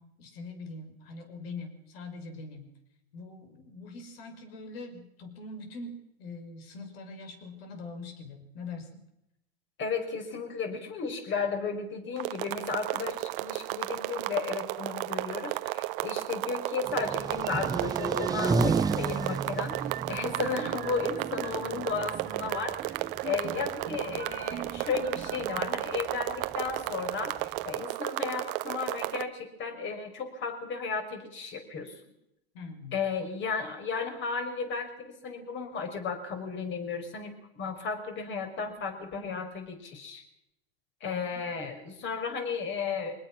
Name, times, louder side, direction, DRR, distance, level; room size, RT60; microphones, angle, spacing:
voice 1, 0.0-2.7 3.1-9.0 32.5-33.0 41.1-41.4, left 3 dB, 65° left, 7 dB, 5.9 m, -43 dB
voice 2, 9.8-19.8 20.1-32.0 32.9-40.2 41.0-43.1, left 5 dB, 35° left, 5 dB, 5.8 m, -34 dB
sound 1, 12.2-29.2, right 19 dB, 60° right, 1.2 m, -34 dB
Trackside Goodwood, 16.8-27.8, right 4 dB, 10° right, 0.8 m, -34 dB
sound 2, 17.4-25.6, right 8 dB, 30° right, 1.6 m, -42 dB
23.5 x 20.0 x 6.3 m, 0.83 s
hypercardioid pair, 115°, 32 cm